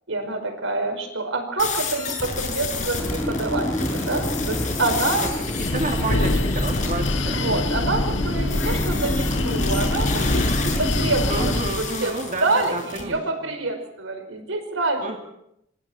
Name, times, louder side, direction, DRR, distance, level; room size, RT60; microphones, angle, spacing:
voice 1, 0.1-5.3 7.3-12.2 12.4-15.2, right 3 dB, 85° right, 6 dB, 5.3 m, -27 dB
sound 1, 1.6-7.1 8.5-13.0, left 4 dB, 40° left, 7.2 m, -31 dB
sound 2, 3.0-11.6, left 1 dB, 15° left, 2.7 m, -29 dB
Breathing, 5.3-12.0, left 1 dB, 65° left, 1.7 m, -25 dB
voice 2, 5.6-7.4 11.3-13.5 15.0-15.2, right 2 dB, 40° right, 2 dB, 2.7 m, -30 dB
26.5 x 25.5 x 4.5 m, 0.77 s
head